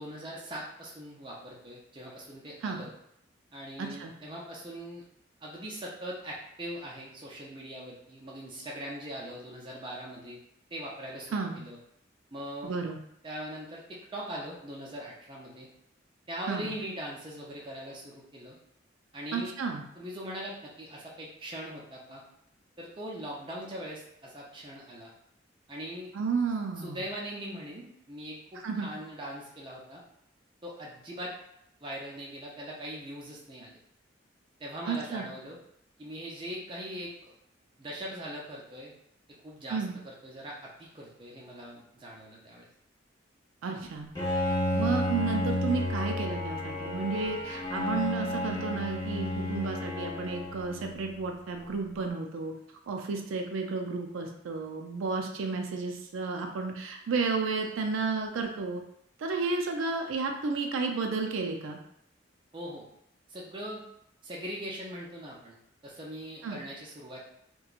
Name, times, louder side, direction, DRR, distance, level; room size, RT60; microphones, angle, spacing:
voice 1, 0.0-2.9 3.5-5.0 5.4-10.4 10.7-11.8 12.3-12.7 13.2-15.7 16.3-18.6 19.1-19.5 19.9-22.2 22.8-25.1 25.7-26.1 26.8-30.0 30.6-31.3 31.8-33.8 34.6-35.6 36.0-37.3 37.8-38.9 39.4-42.7 62.5-62.8 63.3-63.8 64.2-65.6 65.8-67.2, equal, 25° right, -3 dB, 0.5 m, -41 dB
voice 2, 3.8-4.1 11.3-11.6 12.6-13.0 16.5-16.7 19.3-19.8 26.1-27.0 28.6-28.9 34.9-35.2 39.7-40.0 43.6-44.1 44.7-52.5 52.9-58.8 59.2-61.8 66.4-66.6, right 4 dB, 85° right, 3 dB, 0.4 m, -32 dB
Bowed string instrument, 44.1-51.3, left 1 dB, 20° left, 0.8 m, -32 dB
2.8 x 2.2 x 2.4 m, 0.74 s
head